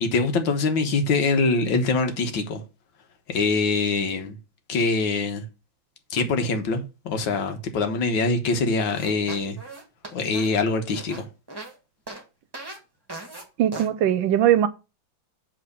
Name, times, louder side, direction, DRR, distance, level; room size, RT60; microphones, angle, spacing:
voice 1, 0.0-2.6 3.3-4.4 4.7-5.4 6.1-9.6 10.1-11.3, left 3 dB, 75° left, 1.9 m, -24 dB
sound 1, 8.9-11.7 12.1-12.2 12.5-12.8 13.1-13.4 13.7-13.9, right 2 dB, 10° right, 1.7 m, -38 dB
voice 2, 13.6-14.7, right 11 dB, 75° right, 1.4 m, -20 dB
7.7 x 4.0 x 6.6 m
omnidirectional pair, 2.1 m